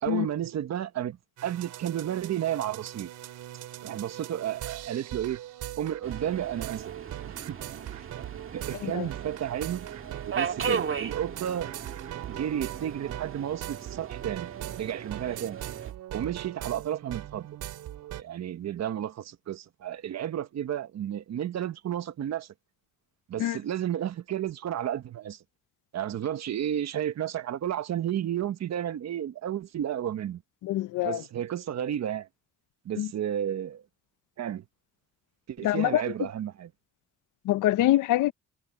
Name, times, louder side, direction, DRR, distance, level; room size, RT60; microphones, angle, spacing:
voice 1, 0.0-1.2 1.4-3.1 3.8-5.4 5.8-6.9 7.2-7.6 7.9-8.1 8.5-9.9 10.3-11.7 12.3-14.5 14.7-15.6 16.1-17.5 18.2-22.5 23.3-25.4 25.9-30.4 31.0-32.3 32.8-33.8 34.4-34.6 35.5-36.7, right 10 dB, 60° right, 1.4 m, -32 dB
sound 1, 1.4-18.2, right 13 dB, 80° right, 3.9 m, -40 dB
Subway metro underground, 6.0-15.9, right 6 dB, 45° right, 1.9 m, -37 dB
voice 2, 30.6-31.2 33.0-33.1 35.6-36.0 37.5-38.3, left 14 dB, 85° left, 0.8 m, -24 dB
cardioid pair, 90°, 30 cm